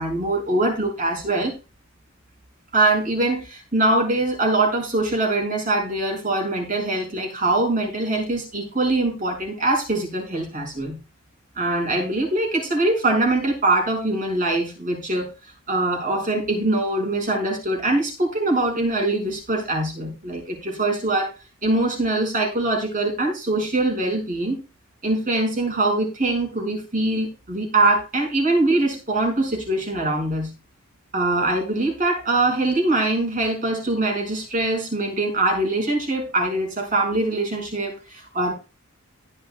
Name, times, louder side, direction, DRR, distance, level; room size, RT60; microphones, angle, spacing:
voice 1, 0.0-1.5 2.7-11.0 11.6-15.3 15.7-21.3 21.6-24.6 25.0-30.5 31.1-38.5, right 2 dB, 40° right, 1 dB, 5.3 m, -23 dB
16.0 x 10.5 x 2.2 m, 0.31 s
head